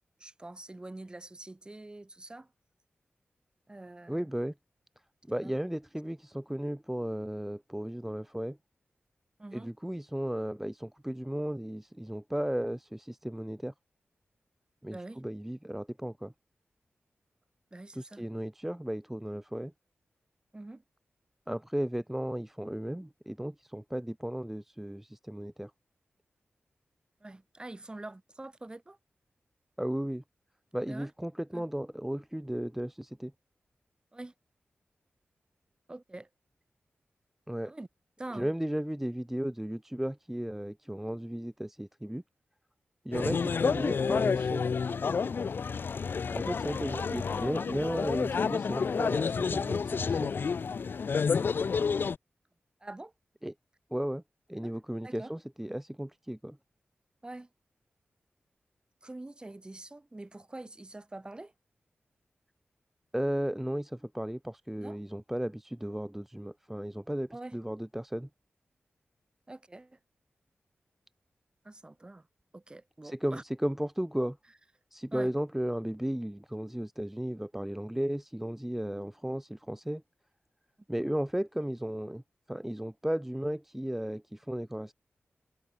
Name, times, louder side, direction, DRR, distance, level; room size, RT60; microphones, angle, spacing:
voice 1, 0.2-2.5 3.7-4.3 5.4-5.6 9.4-9.7 14.9-15.2 17.7-18.2 20.5-20.8 27.2-29.0 30.9-31.1 31.5-31.7 34.1-34.3 35.9-36.3 37.6-37.9 38.2-38.5 43.2-43.4 52.8-53.1 54.5-54.7 55.0-55.3 57.2-57.5 59.0-61.5 64.8-65.0 67.3-67.6 69.5-70.0 71.6-72.3 72.5-73.4 75.1-75.3, right 2 dB, 20° right, 1.5 m, -45 dB
voice 2, 4.1-4.5 5.3-8.6 9.5-13.7 14.8-16.3 17.9-19.7 21.5-25.7 29.8-30.2 30.7-33.3 37.5-37.7 38.3-42.2 43.0-43.4 43.6-44.6 46.3-50.3 53.4-53.5 53.9-54.2 54.5-56.6 63.1-68.3 73.0-74.4 74.9-80.0 80.9-82.2 82.5-84.9, right 1 dB, 5° right, 0.7 m, -35 dB
sound 1, 43.1-52.2, left 5 dB, 60° left, 0.3 m, -29 dB
wide cardioid pair, 95°, 4 cm